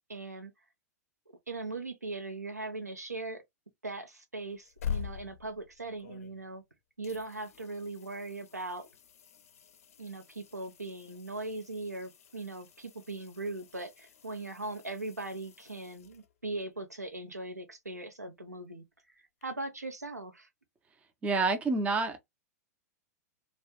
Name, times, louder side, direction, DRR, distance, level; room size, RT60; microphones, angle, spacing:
voice 1, 0.1-0.5 1.5-3.4 3.8-6.6 7.0-8.9 10.0-18.8 19.4-20.5, right 2 dB, 90° right, 0.6 m, -39 dB
sound 1, 4.5-6.7 7.0-16.6 19.4-19.5, left 8 dB, 60° left, 0.4 m, -45 dB
voice 2, 21.2-22.2, right 3 dB, 15° right, 0.5 m, -28 dB
2.3 x 2.0 x 2.8 m
figure-of-eight pair, 100°, 9 cm